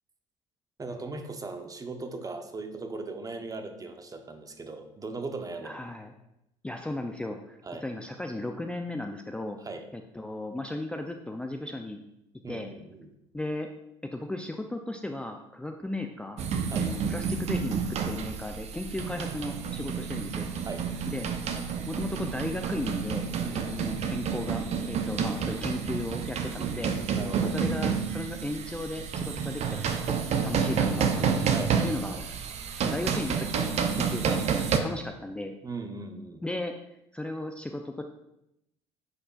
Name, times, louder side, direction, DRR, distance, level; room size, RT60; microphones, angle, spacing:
voice 1, 0.8-5.8 7.6-7.8 9.6-9.9 12.4-13.1 16.7-16.9 20.6-20.9 23.4-23.9 26.4-27.6 31.5-31.8 32.1-32.2 35.6-36.4, right 3 dB, 25° right, 6 dB, 0.9 m, -39 dB
voice 2, 5.6-6.1 6.6-9.6 9.9-12.0 12.5-12.7 13.3-13.7 14.0-16.4 16.7-20.5 21.1-21.3 21.9-26.9 27.4-30.2 30.4-31.6 31.8-32.4 32.8-34.4 34.8-35.6 36.4-36.7 37.1-38.0, left 2 dB, 5° left, 4 dB, 0.5 m, -35 dB
sound 1, 16.4-34.8, right 6 dB, 45° right, 0.7 m, -29 dB
9.8 x 4.3 x 2.4 m, 0.84 s
hypercardioid pair, 60°, 15 cm